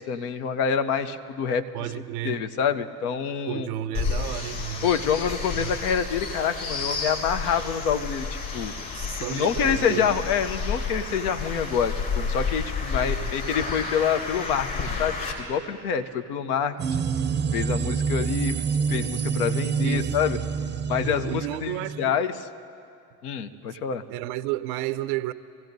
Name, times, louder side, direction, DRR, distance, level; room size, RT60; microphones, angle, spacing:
voice 1, 0.0-1.6 2.2-3.7 4.8-8.7 9.3-16.7 17.5-18.6 18.9-20.4 20.9-22.3 23.2-24.0, left 7 dB, 80° left, 0.7 m, -26 dB
voice 2, 1.7-2.4 3.5-4.9 5.5-5.7 8.9-10.1 13.0-13.4 19.8-20.2 21.0-22.2 24.1-25.3, right 15 dB, 80° right, 0.5 m, -32 dB
sound 1, 3.9-15.3, left 4 dB, 55° left, 3.6 m, -31 dB
sound 2, 16.8-22.1, right 6 dB, 25° right, 0.5 m, -27 dB
25.5 x 16.0 x 2.7 m
hypercardioid pair, 60°, 44 cm